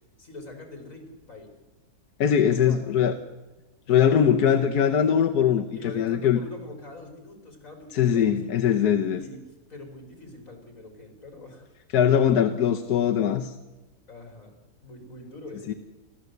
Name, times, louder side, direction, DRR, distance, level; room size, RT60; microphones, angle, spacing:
voice 1, 0.2-1.6 2.5-2.8 3.9-4.6 5.7-8.5 9.1-11.7 14.1-14.5 14.8-15.8, left 2 dB, 55° left, 3 dB, 4.7 m, -43 dB
voice 2, 2.2-3.1 3.9-5.7 6.0-6.4 7.9-9.2 11.9-13.5 15.7-15.8, left 8 dB, 85° left, 5 dB, 1.5 m, -21 dB
30.0 x 13.0 x 8.1 m, 1.1 s
omnidirectional pair, 1.6 m